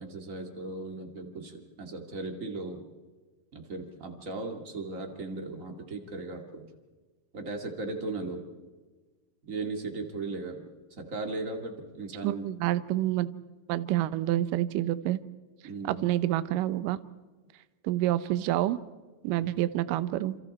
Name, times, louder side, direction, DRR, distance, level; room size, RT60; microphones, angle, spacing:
voice 1, 0.0-2.9 3.5-6.7 7.3-8.4 9.4-10.7 11.0-12.5 15.6-16.0, right 3 dB, 25° right, 3 dB, 1.8 m, -37 dB
voice 2, 12.2-13.3 13.7-15.2 15.8-17.0 17.8-18.8 19.2-20.4, right 14 dB, 75° right, 13 dB, 2.0 m, -28 dB
28.0 x 27.5 x 4.3 m, 1.3 s
omnidirectional pair, 4.7 m